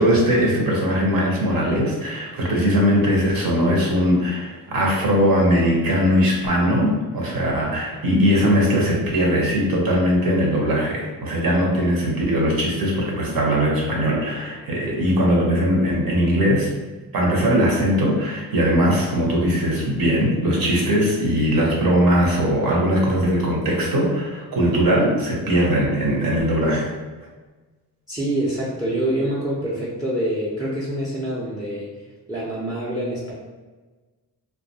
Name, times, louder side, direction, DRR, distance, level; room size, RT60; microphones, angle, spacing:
voice 1, 0.0-16.7 17.1-26.9, equal, 60° right, -2 dB, 0.8 m, -20 dB
voice 2, 28.1-31.9 32.3-33.3, right 1 dB, 10° right, -6 dB, 0.5 m, -26 dB
2.2 x 2.2 x 2.7 m, 1.2 s
cardioid pair, 70°, 39 cm